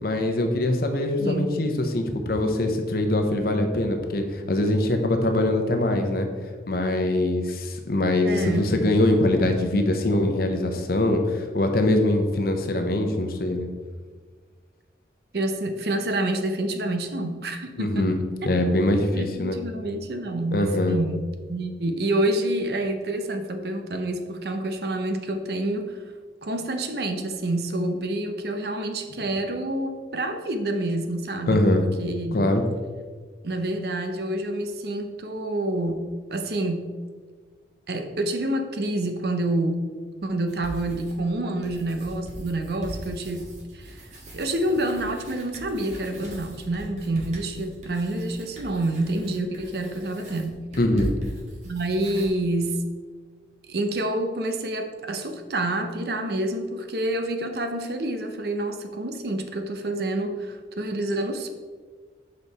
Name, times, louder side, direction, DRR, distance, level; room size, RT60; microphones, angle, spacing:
voice 1, 0.0-6.3 6.7-13.7 17.8-18.1 18.4-19.6 20.5-21.0 31.5-31.8 32.3-32.7 50.8-51.1, left 1 dB, 55° left, 5 dB, 0.8 m, -23 dB
voice 2, 1.2-1.6 8.2-8.7 15.3-18.1 18.4-18.5 19.1-26.0 26.4-32.5 33.4-36.0 36.3-36.9 37.9-39.9 40.2-43.4 43.7-44.0 44.3-50.5 51.6-52.8 53.7-61.5, right 1 dB, 60° right, 6 dB, 0.7 m, -28 dB
sound 1, 40.5-41.3 41.6-52.3, equal, 40° right, 1.5 m, -40 dB
6.5 x 5.2 x 4.1 m, 1.5 s
head